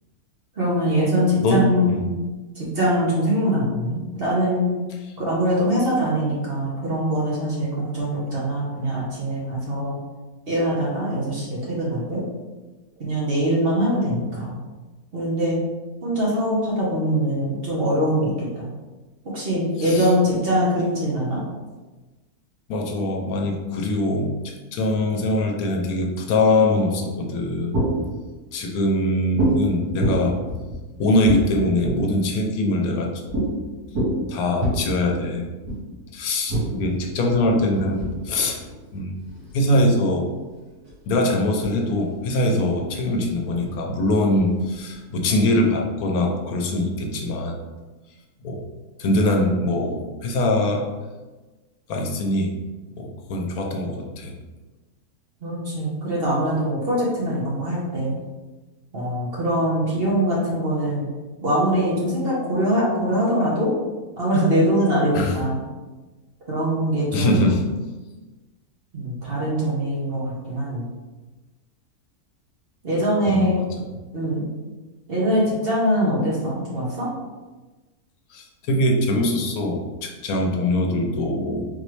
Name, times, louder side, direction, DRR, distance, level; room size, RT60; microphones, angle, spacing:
voice 1, 0.5-2.1 2.5-4.7 5.2-10.0 10.5-12.2 13.0-14.6 15.1-15.6 16.0-18.7 19.3-21.4 55.4-58.2 58.9-61.0 61.4-63.7 64.2-65.6 66.5-67.4 68.9-70.9 72.8-73.7 74.1-74.5 75.1-77.1, equal, 45° right, -5 dB, 1.0 m, -23 dB
voice 2, 1.4-2.1 19.8-20.1 22.7-27.8 28.5-30.4 31.0-33.1 34.3-35.5 36.1-38.6 38.9-39.1 39.5-40.3 41.1-47.6 48.4-48.6 49.0-50.9 51.9-52.5 53.0-54.3 65.1-65.3 67.1-67.6 73.3-73.7 78.3-81.6, left 1 dB, 75° left, 2 dB, 1.1 m, -22 dB
sound 1, 27.3-28.2 29.4-29.6 30.0-32.2 33.3-33.5 33.8-34.7 35.6-35.8 36.5-39.9 40.6-41.1 41.6-41.7 42.0-43.8 44.4-45.2, right 1 dB, 80° right, 1.9 m, -27 dB
3.9 x 3.1 x 3.1 m, 1.2 s
omnidirectional pair, 1.6 m